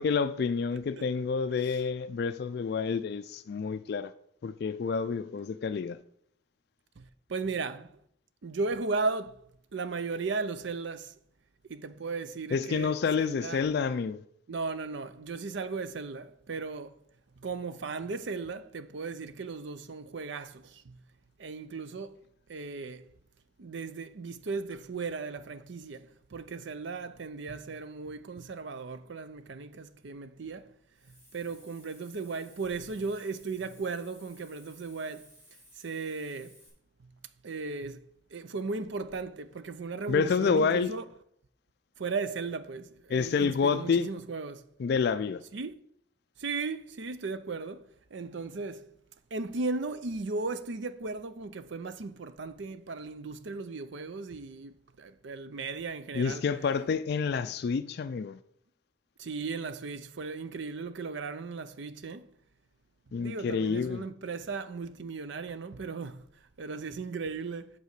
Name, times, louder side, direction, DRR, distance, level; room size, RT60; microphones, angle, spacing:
voice 1, 0.0-4.1 4.4-6.0 12.5-14.2 40.1-40.9 43.1-44.1 44.8-45.4 56.1-58.4 63.1-64.0, left 5 dB, 55° left, 0.3 m, -28 dB
voice 2, 7.3-7.9 8.4-9.4 9.7-11.1 11.7-12.9 13.2-13.6 14.5-16.9 17.4-20.9 21.4-22.2 22.5-23.1 23.6-30.7 31.3-35.3 35.8-36.6 37.4-38.0 38.3-41.0 42.0-44.6 45.5-45.8 46.4-47.8 48.1-48.9 49.3-56.4 59.2-62.3 63.2-66.2 66.6-67.7, right 4 dB, 60° right, 0.5 m, -36 dB
Hiss, 30.9-36.7, equal, 10° right, 3.5 m, -58 dB
8.2 x 4.1 x 6.6 m
head